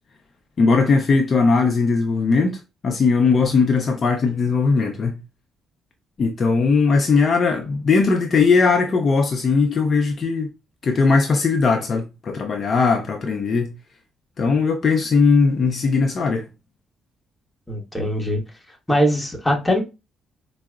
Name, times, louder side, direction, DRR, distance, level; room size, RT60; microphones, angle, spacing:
voice 1, 0.6-5.2 6.2-10.5 10.8-13.7 14.4-16.5, left 4 dB, 45° left, 0.4 m, -19 dB
voice 2, 17.7-18.4 18.9-19.8, equal, 10° left, 1.1 m, -21 dB
4.5 x 2.0 x 2.3 m
cardioid pair, 90°, 0 cm